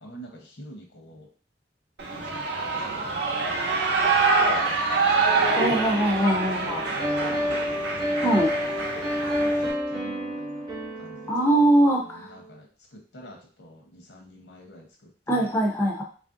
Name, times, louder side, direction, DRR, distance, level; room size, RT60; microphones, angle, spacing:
voice 1, 0.0-1.3 2.1-2.5 2.8-5.8 6.4-7.7 8.0-8.7 9.4-10.7 10.9-11.3 12.1-12.7 12.9-15.5, equal, 85° left, 1 dB, 0.9 m, -46 dB
Shout / Cheering, 2.0-9.7, right 4 dB, 70° right, 0.7 m, -25 dB
voice 2, 5.5-6.8 8.2-8.5 11.3-12.2 15.3-16.0, right 1 dB, 15° left, 0 dB, 0.4 m, -22 dB
sound 1, 5.8-12.6, equal, 25° right, 0.7 m, -30 dB
3.1 x 2.5 x 2.5 m, 0.40 s
head